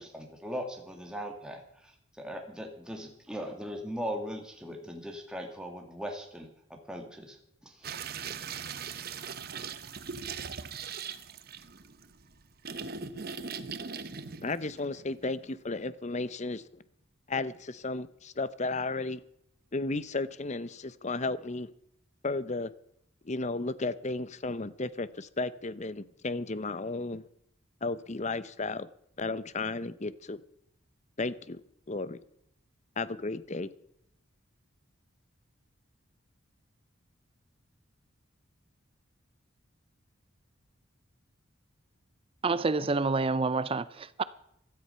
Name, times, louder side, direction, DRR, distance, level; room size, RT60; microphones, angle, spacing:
voice 1, 0.0-1.9 2.2-7.4 7.6-8.0, equal, 5° right, 2.0 m, -39 dB
sound 1, 7.8-15.5, right 6 dB, 50° right, 1.0 m, -40 dB
voice 2, 14.4-16.8 17.3-19.2 19.7-21.7 22.2-22.7 23.2-27.2 27.8-28.9 29.2-30.4 31.2-31.6 31.9-32.2 33.0-33.7, left 3 dB, 35° left, 0.8 m, -34 dB
voice 3, 42.4-44.2, right 3 dB, 25° right, 0.5 m, -28 dB
16.0 x 13.0 x 5.6 m
head